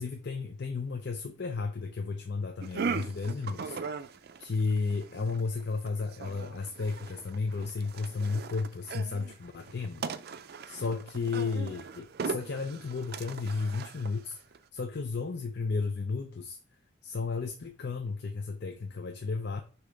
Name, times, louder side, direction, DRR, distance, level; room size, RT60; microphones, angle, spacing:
voice 1, 0.0-3.8 4.4-10.0 10.7-14.4 14.7-16.6 17.0-19.6, left 4 dB, 60° left, 0.6 m, -33 dB
sound 1, 2.6-14.6, right 5 dB, 55° right, 0.4 m, -39 dB
6.7 x 2.9 x 5.1 m
head